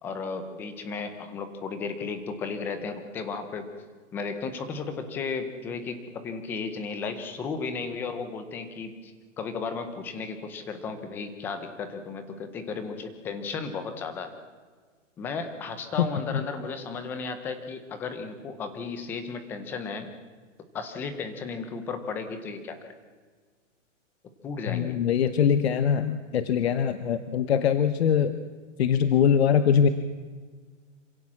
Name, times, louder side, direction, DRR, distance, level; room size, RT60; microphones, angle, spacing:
voice 1, 0.0-3.7 4.1-9.1 9.4-14.3 15.2-20.1 20.7-22.9 24.4-25.0, left 4 dB, 5° left, 9 dB, 0.6 m, -34 dB
voice 2, 24.7-28.3 28.8-29.9, left 8 dB, 55° left, 11 dB, 1.1 m, -22 dB
27.0 x 16.5 x 7.3 m, 1.5 s
hypercardioid pair, 170°, 38 cm